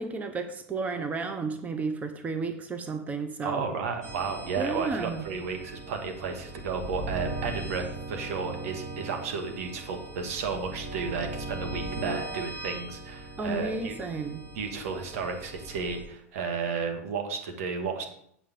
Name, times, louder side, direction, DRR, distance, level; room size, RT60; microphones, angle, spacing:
voice 1, 0.0-3.6 4.6-5.2 13.4-14.4, right 4 dB, 20° right, 7 dB, 0.9 m, -32 dB
voice 2, 3.4-14.0 14.5-18.1, right 5 dB, 70° right, 4 dB, 2.2 m, -33 dB
sound 1, 4.0-16.0, right 2 dB, 40° right, 3.4 m, -39 dB
8.3 x 5.0 x 7.6 m, 0.69 s
hypercardioid pair, 115°, 8 cm